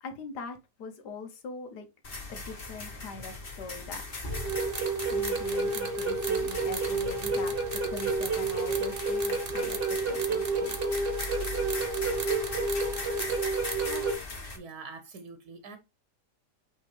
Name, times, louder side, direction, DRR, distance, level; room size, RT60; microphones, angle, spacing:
voice 1, 0.0-1.9 2.3-4.0 5.1-10.8, left 3 dB, 75° left, 1.4 m, -43 dB
sound 1, 2.0-14.6, left 3 dB, 35° left, 1.5 m, -39 dB
sound 2, 4.3-14.1, right 3 dB, 40° right, 1.2 m, -30 dB
voice 2, 14.6-15.8, right 4 dB, 70° right, 1.3 m, -44 dB
8.9 x 3.4 x 3.3 m
omnidirectional pair, 1.8 m